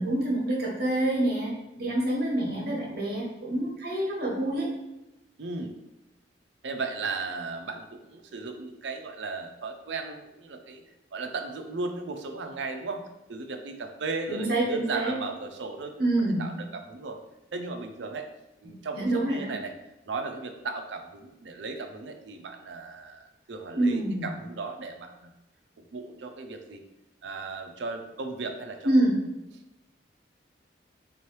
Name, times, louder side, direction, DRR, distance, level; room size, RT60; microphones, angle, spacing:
voice 1, 0.0-4.7 14.3-15.1 16.0-16.4 18.9-19.5 23.8-24.2 28.8-29.2, right 1 dB, 60° right, -3 dB, 1.2 m, -26 dB
voice 2, 5.4-5.8 6.6-10.8 11.1-15.9 16.2-17.2 17.5-18.3 18.6-19.7 20.0-25.3 25.8-26.8 27.2-28.9, right 3 dB, 85° right, 5 dB, 0.5 m, -36 dB
3.7 x 3.1 x 3.1 m, 0.94 s
head